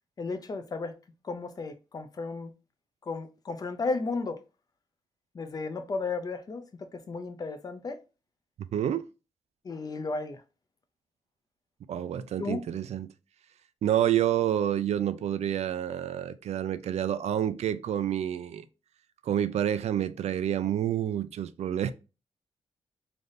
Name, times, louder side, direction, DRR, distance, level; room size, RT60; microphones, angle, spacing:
voice 1, 0.2-0.9 1.2-2.5 3.0-4.4 5.3-8.0 9.6-10.4 12.4-12.7, left 3 dB, 35° left, 0.5 m, -34 dB
voice 2, 8.7-9.1 11.9-13.1 13.8-18.6 19.3-21.9, right 10 dB, 70° right, 0.4 m, -28 dB
3.3 x 2.6 x 3.9 m
wide cardioid pair, 140°, 11 cm